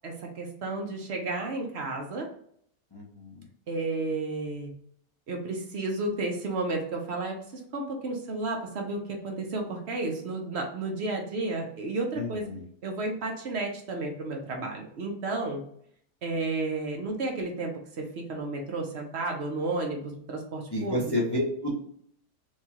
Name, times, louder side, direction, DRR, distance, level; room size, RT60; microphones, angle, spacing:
voice 1, 0.0-2.3 3.7-4.7 5.3-7.4 7.7-12.5 12.8-15.6 16.2-21.1, right 2 dB, 60° right, 1 dB, 0.7 m, -32 dB
voice 2, 2.9-3.4 12.1-12.6 20.7-21.7, left 1 dB, 40° left, -5 dB, 0.3 m, -30 dB
4.6 x 2.3 x 2.8 m, 0.66 s
omnidirectional pair, 1.8 m